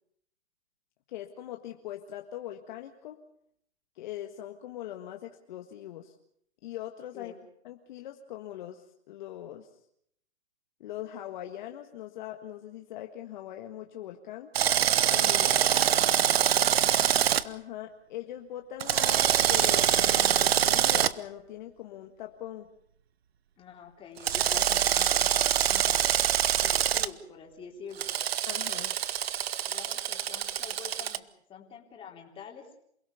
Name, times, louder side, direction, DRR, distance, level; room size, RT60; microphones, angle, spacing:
voice 1, 1.1-3.2 3.9-6.2 6.6-7.3 7.6-9.7 10.8-14.5 15.1-15.3 16.5-16.7 17.4-19.2 19.5-22.7 28.5-28.9, left 12 dB, 45° left, 4 dB, 1.7 m, -41 dB
Drill, 14.5-17.4 18.8-21.1 24.2-27.1 28.0-31.2, right 10 dB, 60° right, 1.1 m, -25 dB
voice 2, 15.3-16.5 23.6-26.2 26.6-28.1 29.7-32.7, left 6 dB, 15° left, 1 dB, 3.7 m, -46 dB
28.0 x 17.0 x 6.9 m, 0.70 s
hypercardioid pair, 150°, 34 cm